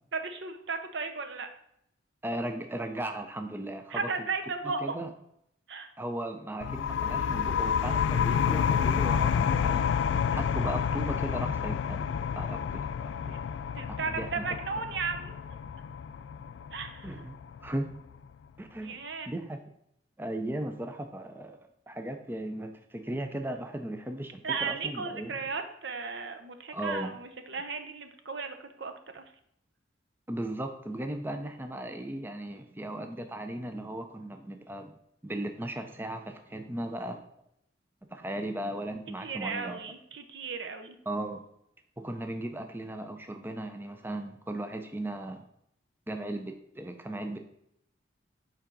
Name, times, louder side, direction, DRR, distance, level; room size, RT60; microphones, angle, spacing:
voice 1, 0.1-1.5 3.9-5.0 5.7-5.9 13.3-13.4 13.8-15.3 16.7-17.1 18.8-19.3 24.4-29.2 39.2-41.0, right 4 dB, 65° right, 7 dB, 0.7 m, -35 dB
voice 2, 2.2-4.1 4.8-5.1 6.0-10.0 10.3-13.2 13.9-14.4 17.0-17.9 18.6-19.0 19.3-19.6 20.2-21.6 21.9-25.3 26.7-27.1 30.3-34.9 35.2-37.2 38.1-39.8 41.1-41.4 42.0-45.4 46.1-47.4, right 1 dB, 10° right, 5 dB, 0.4 m, -37 dB
sound 1, 6.6-18.0, left 7 dB, 80° left, 0.3 m, -29 dB
7.2 x 4.6 x 3.8 m, 0.74 s
head